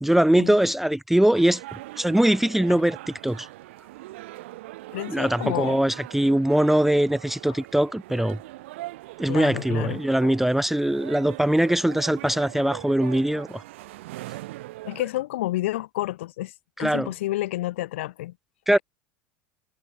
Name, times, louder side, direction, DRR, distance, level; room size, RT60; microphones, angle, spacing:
voice 1, 0.0-3.0 3.2-3.5 5.1-8.4 9.2-13.6 16.8-17.1 18.7-18.8, right 1 dB, 5° right, 0.6 m, -22 dB
sound 1, 1.4-15.0, right 18 dB, 80° right, 7.1 m, -41 dB
voice 2, 4.9-5.8 7.5-7.6 9.3-10.4 14.9-16.5 16.8-18.3, left 16 dB, 85° left, 7.3 m, -30 dB
supercardioid pair, 110°, 6 cm